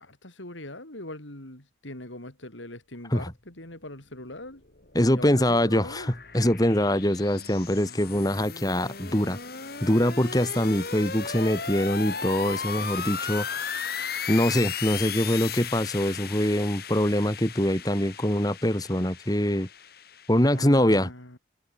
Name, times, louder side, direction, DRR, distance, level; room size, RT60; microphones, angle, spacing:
voice 1, 0.0-4.6 5.0-6.1 20.5-21.4, left 1 dB, 85° left, 7.1 m, -41 dB
sound 1, 4.5-20.6, left 6 dB, 50° left, 3.1 m, -36 dB
voice 2, 4.9-6.0 6.3-9.4 9.8-13.6 14.3-19.7 20.3-21.1, left 1 dB, 20° left, 2.4 m, -24 dB
head